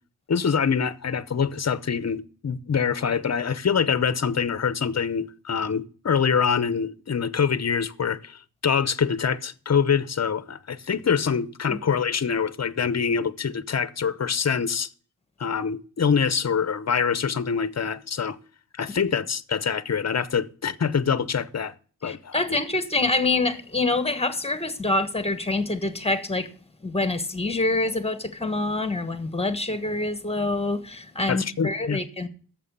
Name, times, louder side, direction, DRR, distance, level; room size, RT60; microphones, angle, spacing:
voice 1, 0.3-14.9 15.4-18.4 18.8-21.7 22.0-22.6 31.3-32.0, left 6 dB, 45° left, 0.7 m, -25 dB
voice 2, 22.0-26.5 26.8-32.3, left 2 dB, 15° left, 1.3 m, -26 dB
11.0 x 7.4 x 6.8 m
wide cardioid pair, 110°, 37 cm